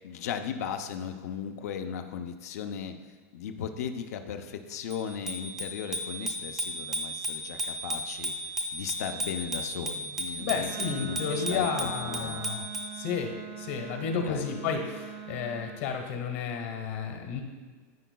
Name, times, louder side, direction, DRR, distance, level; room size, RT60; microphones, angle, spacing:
voice 1, 0.0-3.0 3.3-12.4 14.3-14.5, left 8 dB, 80° left, 7 dB, 0.6 m, -37 dB
Bicycle bell, 4.9-13.0, right 1 dB, 5° right, 0.5 m, -35 dB
voice 2, 10.4-12.6 12.9-17.4, left 6 dB, 55° left, 4 dB, 1.2 m, -32 dB
Wind instrument woodwind instrument, 10.7-15.8, right 7 dB, 75° right, 1.4 m, -42 dB
13.0 x 4.6 x 2.2 m, 1.5 s
supercardioid pair, 175°, 8 cm